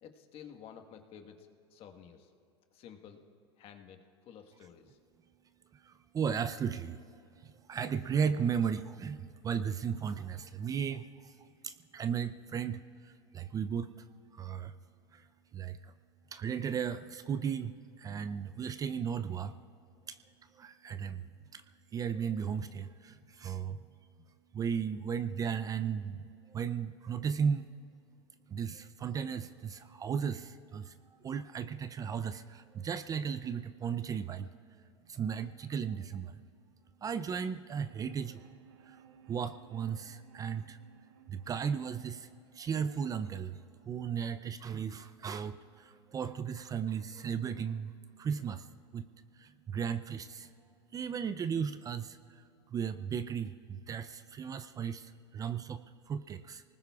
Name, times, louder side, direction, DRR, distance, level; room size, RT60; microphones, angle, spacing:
voice 1, 0.0-2.3 2.7-3.2 3.6-5.0, left 8 dB, 45° left, 5 dB, 1.4 m, -52 dB
voice 2, 5.8-7.0 7.4-11.4 11.6-13.9 14.3-14.7 15.1-15.3 15.5-15.9 16.3-17.7 18.0-19.6 20.1-20.2 20.5-21.3 21.5-21.6 21.9-23.8 24.5-27.7 28.5-30.9 31.2-34.5 35.1-36.3 37.0-38.4 38.9-39.0 39.3-40.8 41.3-43.6 43.9-47.9 48.2-48.7 48.9-49.0 49.4-50.5 50.9-52.4 52.7-56.6, right 7 dB, 25° right, 12 dB, 0.5 m, -35 dB
sound 1, 37.7-43.7, right 8 dB, 85° right, 0.8 m, -61 dB
29.0 x 19.5 x 2.4 m, 2.7 s
hypercardioid pair, 105°, 14 cm